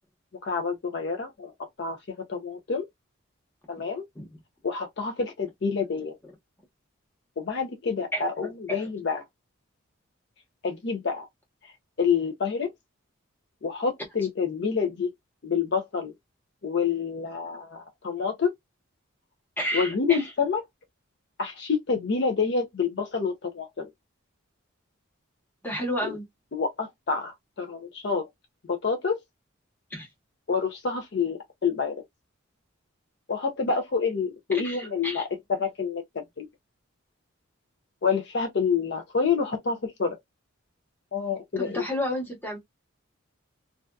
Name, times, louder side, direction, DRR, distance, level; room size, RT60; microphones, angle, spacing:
voice 1, 0.4-1.5 1.8-2.9 3.7-4.0 4.6-6.2 7.4-9.2 10.6-11.3 11.6-12.7 13.6-15.1 15.4-16.1 16.6-18.5 19.7-20.6 21.4-23.9 26.0-26.1 26.5-28.3 28.7-29.2 30.5-32.0 33.3-36.5 38.0-40.2 41.1-41.8, left 5 dB, 55° left, 0.5 m, -28 dB
voice 2, 19.6-20.2 25.6-26.2 29.9-30.1 34.6-35.2 41.6-42.6, equal, 10° left, 1.0 m, -31 dB
2.6 x 2.2 x 2.2 m
head